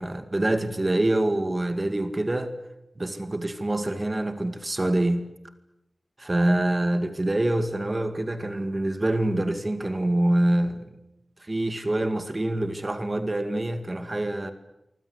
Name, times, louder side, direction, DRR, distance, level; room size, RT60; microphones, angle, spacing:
voice 1, 0.0-2.5 3.0-5.3 6.2-11.0 11.4-14.5, right 1 dB, 30° right, 2.1 m, -25 dB
25.5 x 25.0 x 8.1 m
wide cardioid pair, 75°, 0 cm